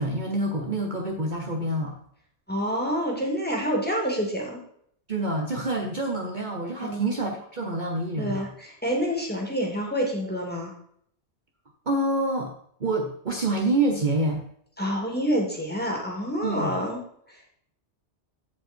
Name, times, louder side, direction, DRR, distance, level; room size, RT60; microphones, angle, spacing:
voice 1, 0.0-1.9 5.1-8.5 11.9-12.5 12.8-14.4 16.4-16.8, right 2 dB, 40° right, 1 dB, 1.2 m, -27 dB
voice 2, 2.5-4.6 6.8-7.1 8.2-10.7 14.8-17.0 17.3-17.5, equal, 10° left, -1 dB, 2.8 m, -28 dB
15.5 x 5.6 x 4.5 m, 0.67 s
omnidirectional pair, 1.2 m